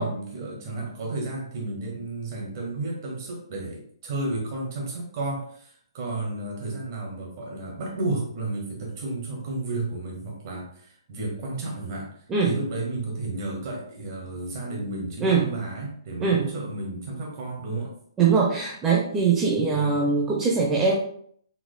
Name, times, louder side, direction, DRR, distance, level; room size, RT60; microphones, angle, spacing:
voice 1, 0.0-12.1 12.4-17.9 19.7-19.9, right 2 dB, 40° right, -1 dB, 1.6 m, -32 dB
voice 2, 15.2-15.5 16.2-16.5 18.2-21.0, right 5 dB, 15° right, -2 dB, 0.6 m, -22 dB
4.5 x 4.2 x 2.2 m, 0.62 s
figure-of-eight pair, 130°, 3 cm